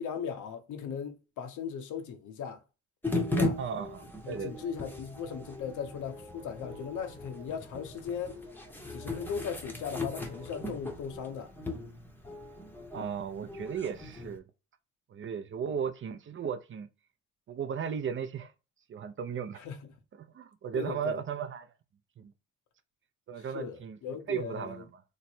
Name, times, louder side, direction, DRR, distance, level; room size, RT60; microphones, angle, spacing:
voice 1, 0.0-2.6 3.3-3.6 4.2-8.4 8.9-11.5 19.6-19.9 20.7-21.2 23.4-24.8, left 7 dB, 80° left, 0.8 m, -38 dB
sound 1, 3.0-14.4, left 2 dB, 5° left, 0.8 m, -37 dB
voice 2, 3.6-4.7 12.9-14.4 15.1-16.9 17.5-18.5 18.9-19.6 20.2-21.7 22.2-22.3 23.3-24.0 24.3-25.0, right 7 dB, 40° right, 0.5 m, -36 dB
3.1 x 2.2 x 4.2 m
cardioid pair, 90°, 30 cm